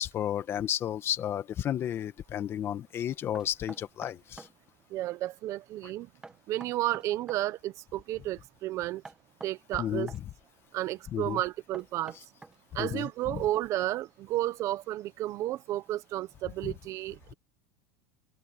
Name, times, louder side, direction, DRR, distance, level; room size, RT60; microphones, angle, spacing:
voice 1, 0.0-4.5 9.8-10.2 11.1-11.4 12.8-13.4 16.6-16.7, left 10 dB, 25° left, 1.3 m, -32 dB
Knock, 3.3-4.6 6.2-7.5 9.0-10.2 11.7-13.2, right 3 dB, 10° right, 1.1 m, -48 dB
voice 2, 4.9-6.1 6.5-9.0 9.4-10.1 10.7-12.1 12.7-17.3, right 15 dB, 35° right, 0.9 m, -32 dB
supercardioid pair, 160°, 9 cm